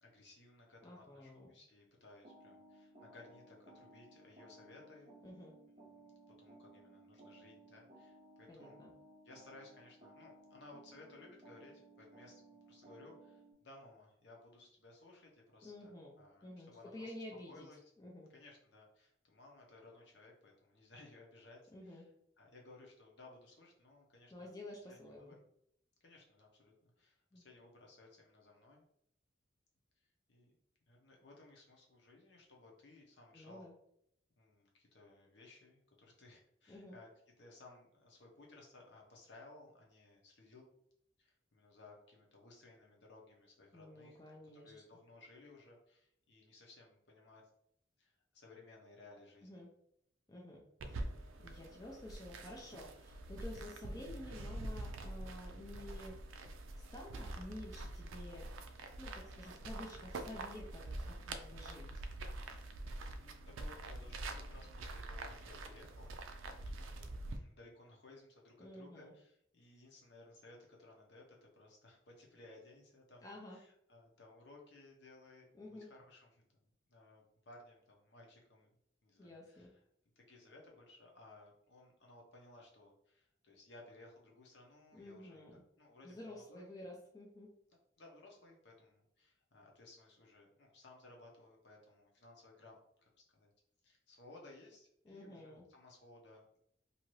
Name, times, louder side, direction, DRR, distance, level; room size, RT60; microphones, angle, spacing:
voice 1, 0.0-5.1 5.8-5.9 6.4-8.8 9.2-12.4 12.7-17.8 18.3-22.1 22.4-24.5 24.9-25.4 26.0-28.8 30.3-30.6 30.9-33.7 34.4-37.1 37.4-40.7 41.2-47.4 48.0-49.6 59.3-59.6 63.2-78.7 79.0-79.8 80.2-85.4 85.8-86.7 88.0-93.5 93.8-96.6, left 2 dB, 60° left, -1 dB, 0.8 m, -60 dB
voice 2, 0.8-1.5 5.2-5.6 8.5-8.9 15.6-16.1 16.4-17.7 18.0-18.3 21.7-22.0 24.3-25.3 27.3-27.4 33.3-33.7 36.7-37.0 43.7-44.7 49.4-49.7 50.3-51.1 51.4-56.2 56.7-58.5 59.0-62.0 68.6-69.1 73.2-73.6 75.5-75.9 79.2-79.7 84.9-85.6 86.0-87.5 95.1-95.6, left 1 dB, 20° left, -2 dB, 0.4 m, -51 dB
sound 1, 2.2-13.5, right 1 dB, 30° right, 0.6 m, -60 dB
sound 2, 50.8-67.4, right 2 dB, 85° right, 0.4 m, -46 dB
2.7 x 2.5 x 3.0 m, 0.72 s
head